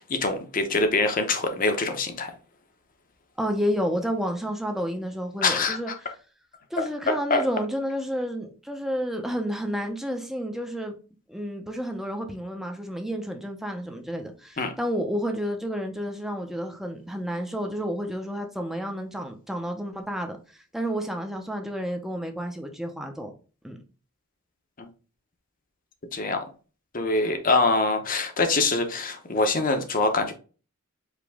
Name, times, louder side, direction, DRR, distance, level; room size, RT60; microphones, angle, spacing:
voice 1, 0.0-2.3 5.4-5.8 7.1-7.4 14.6-14.7 24.8-24.9 26.1-26.4 26.9-30.3, left 3 dB, 40° left, 0.8 m, -24 dB
voice 2, 3.4-5.9 6.7-11.0 11.3-23.3 23.6-23.8, equal, ahead, 0.6 m, -30 dB
5.0 x 2.9 x 3.5 m
head